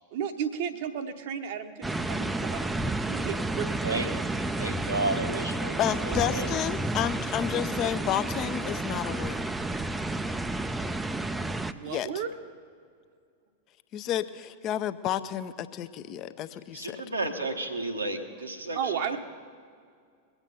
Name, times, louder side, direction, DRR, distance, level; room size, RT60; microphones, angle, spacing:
voice 1, 0.1-4.2 11.7-12.3 18.7-19.2, right 8 dB, 50° right, 8 dB, 1.0 m, -34 dB
sound 1, 1.8-11.7, right 2 dB, 10° right, 0.5 m, -31 dB
voice 2, 4.6-6.5 16.7-19.2, right 2 dB, 80° right, 3 dB, 1.3 m, -32 dB
voice 3, 5.8-9.4 11.9-12.1 13.9-17.0, left 11 dB, 35° left, 12 dB, 0.6 m, -31 dB
21.5 x 8.2 x 5.4 m, 2.2 s
figure-of-eight pair, 90°, 0 cm